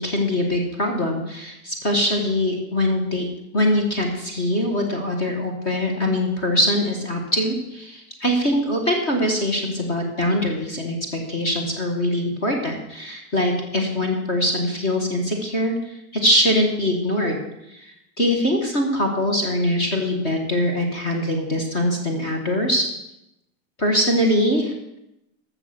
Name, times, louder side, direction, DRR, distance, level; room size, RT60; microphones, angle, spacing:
voice 1, 0.0-3.3 3.5-11.0 11.3-17.4 17.7-22.9 23.8-25.0, left 1 dB, 30° left, 2 dB, 1.6 m, -22 dB
13.0 x 6.8 x 6.0 m, 0.85 s
supercardioid pair, 175°, 44 cm